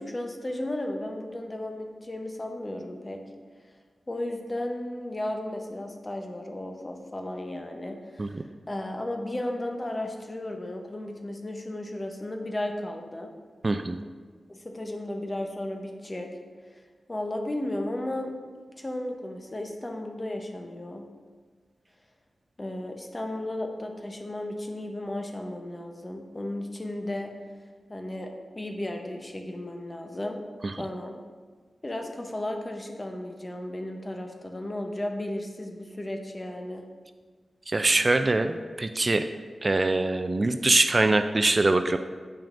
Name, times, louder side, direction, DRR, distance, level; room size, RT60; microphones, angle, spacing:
voice 1, 0.0-3.2 4.1-13.3 14.6-16.3 17.1-18.3 18.8-21.0 22.6-27.3 27.9-30.4 30.8-31.2 31.8-36.8, left 1 dB, 30° left, 3 dB, 0.8 m, -34 dB
voice 2, 13.6-14.0 37.7-38.5 38.8-39.3 39.6-42.0, right 2 dB, 40° right, 8 dB, 0.3 m, -23 dB
8.6 x 5.8 x 2.5 m, 1.5 s
cardioid pair, 45°, 0 cm